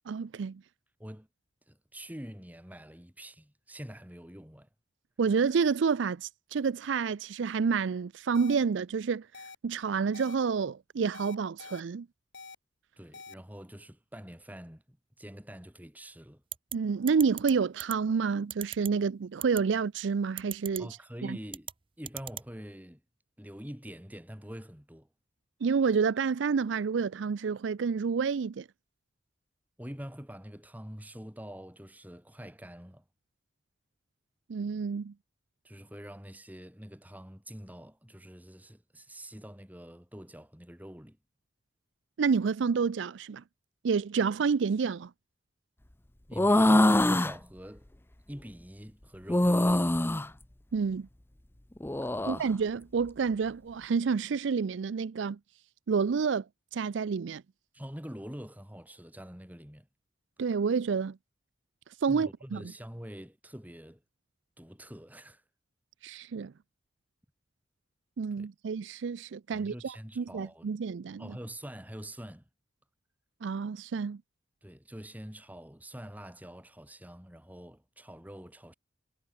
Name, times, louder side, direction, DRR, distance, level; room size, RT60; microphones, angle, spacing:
voice 1, 0.1-0.6 5.2-9.3 9.6-12.1 16.7-20.9 21.2-21.4 25.6-28.7 34.5-35.1 42.2-43.4 43.8-45.1 50.7-51.1 52.3-55.4 55.9-56.4 56.7-57.4 60.4-61.2 62.0-62.6 66.0-66.5 68.2-71.4 73.4-74.2, right 5 dB, 75° right, 0.4 m, -29 dB
voice 2, 1.7-4.7 13.0-16.4 20.8-21.7 22.0-23.0 23.4-25.1 29.8-33.0 35.6-41.2 46.3-47.9 48.3-49.9 52.1-52.3 57.7-59.9 62.1-64.0 64.6-65.4 68.4-68.5 69.5-70.7 71.2-72.5 74.6-78.7, equal, 10° right, 3.5 m, -45 dB
sound 1, 8.3-8.5 9.3-9.6 10.1-10.3 11.1-11.8 12.3-12.6 13.1-13.3, left 4 dB, 65° left, 6.2 m, -46 dB
sound 2, 16.5-16.7 17.1-17.5 17.8-17.9 18.5-18.9 19.4-19.6 20.4-20.8 21.5-21.7 22.1-22.5, right 10 dB, 30° right, 0.7 m, -37 dB
sound 3, 46.3-47.3 49.3-50.3 51.8-52.4, left 1 dB, 10° left, 0.6 m, -23 dB
head